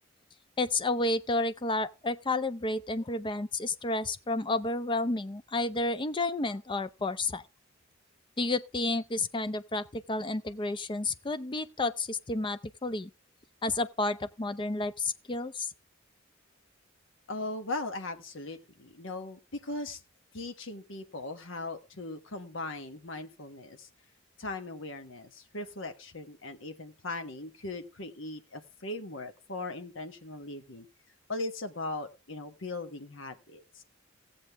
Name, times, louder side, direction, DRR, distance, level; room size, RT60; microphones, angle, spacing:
voice 1, 0.6-7.4 8.4-13.1 13.6-15.7, left 2 dB, 25° left, 0.5 m, -31 dB
voice 2, 17.3-20.0 20.3-23.9 24.4-30.9 31.3-33.8, left 2 dB, 70° left, 1.3 m, -39 dB
16.5 x 7.5 x 3.5 m
head